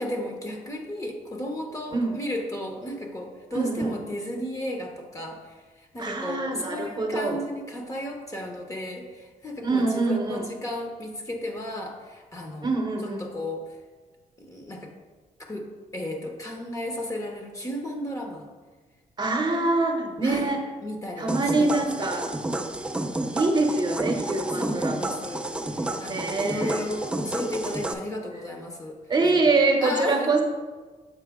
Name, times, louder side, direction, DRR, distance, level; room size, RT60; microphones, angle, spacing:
voice 1, 0.0-12.7 13.2-13.8 14.4-14.9 15.4-15.7 15.9-18.5 19.4-20.5 20.8-22.1 24.5-29.5 29.8-30.4, left 1 dB, 25° left, 2 dB, 0.8 m, -34 dB
voice 2, 3.5-4.0 6.0-7.4 9.6-10.5 12.6-13.3 19.2-20.7 21.2-22.3 23.3-25.2 26.1-26.8 29.1-30.4, right 3 dB, 35° right, 3 dB, 0.8 m, -25 dB
sound 1, 21.3-27.9, right 1 dB, 10° right, 0.4 m, -30 dB
7.3 x 4.3 x 3.6 m, 1.4 s
cardioid pair, 100°, 13 cm